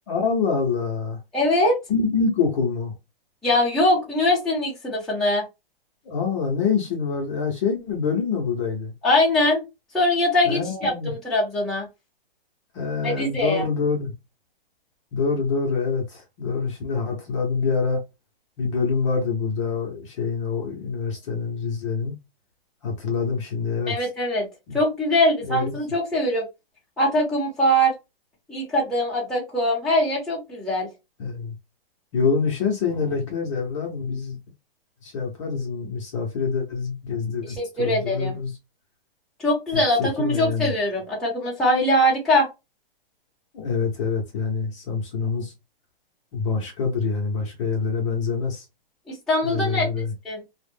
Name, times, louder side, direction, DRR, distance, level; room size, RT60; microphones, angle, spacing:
voice 1, 0.1-1.2 1.9-2.9 6.0-8.9 10.4-11.1 12.7-14.1 15.1-18.0 18.6-22.1 22.8-24.1 24.7-24.8 25.5-25.7 31.2-31.5 32.1-34.4 35.0-38.5 39.7-40.7 43.5-45.5 46.3-48.6 49.4-50.1, left 5 dB, 35° left, 0.7 m, -26 dB
voice 2, 1.3-1.8 3.4-5.4 9.0-9.6 9.9-11.9 13.0-13.6 23.9-24.5 24.7-26.4 27.0-27.9 28.5-30.9 37.6-38.4 39.4-42.5 49.1-49.9 50.2-50.4, left 1 dB, ahead, 0.8 m, -22 dB
2.3 x 2.1 x 3.3 m
hypercardioid pair, 150°, 29 cm